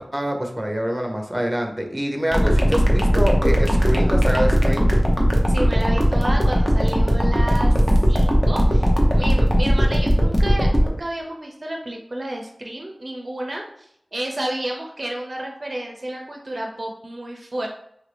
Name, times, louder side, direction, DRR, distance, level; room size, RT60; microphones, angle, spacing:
voice 1, 0.0-4.9, equal, 15° right, 3 dB, 0.7 m, -25 dB
sound 1, 2.3-10.9, equal, 30° left, 0.8 m, -18 dB
voice 2, 5.5-7.7 8.1-17.7, right 1 dB, 50° right, 0 dB, 0.5 m, -31 dB
3.1 x 2.5 x 3.3 m, 0.74 s
cardioid pair, 40°, 0 cm